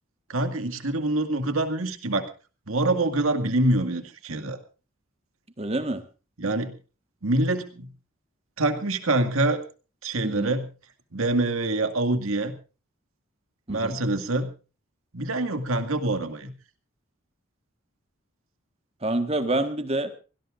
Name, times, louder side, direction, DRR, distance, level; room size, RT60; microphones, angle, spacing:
voice 1, 0.3-2.3 2.7-4.6 6.4-6.7 7.2-7.9 8.6-9.6 10.0-10.7 11.1-12.5 13.7-14.5 15.1-16.5, right 2 dB, 90° right, 7 dB, 2.1 m, -25 dB
voice 2, 5.6-6.0 10.2-10.5 13.7-14.0 19.0-20.1, right 2 dB, 30° right, 9 dB, 1.5 m, -27 dB
25.0 x 17.0 x 2.5 m, 0.34 s
head